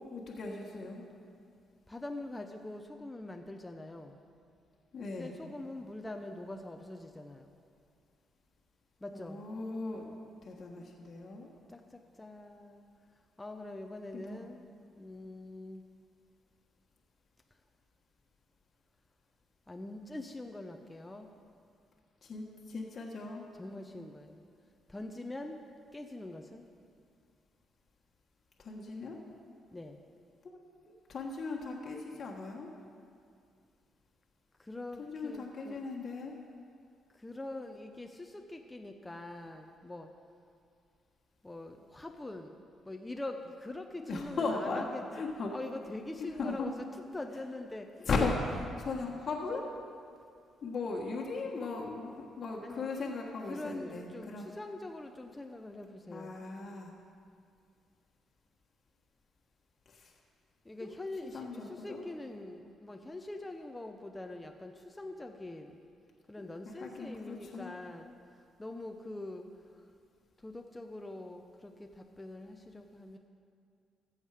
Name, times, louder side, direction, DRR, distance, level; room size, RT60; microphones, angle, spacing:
voice 1, 0.1-1.0 4.9-5.3 9.1-10.0 10.4-11.5 14.1-14.5 22.2-23.4 28.6-29.2 30.4-30.6 31.1-32.7 35.0-36.4 44.0-44.8 45.1-45.5 46.4-46.7 48.0-49.7 50.6-54.5 56.1-56.9 59.9-60.1 60.8-60.9 61.3-62.0 66.7-67.7, left 3 dB, 50° left, -2 dB, 1.3 m, -37 dB
voice 2, 1.9-4.2 5.2-7.5 9.0-9.4 11.7-12.9 13.4-14.6 15.0-15.8 19.7-21.3 23.6-24.4 24.9-25.6 25.9-26.7 29.7-30.0 34.6-35.8 37.1-40.1 41.4-42.6 42.8-45.0 45.5-46.7 47.1-48.1 52.6-52.8 53.5-56.4 60.6-65.8 66.3-69.9 70.4-73.2, left 2 dB, 15° left, 4 dB, 0.6 m, -44 dB
14.0 x 7.2 x 4.9 m, 2.3 s
cardioid pair, 90°, 0 cm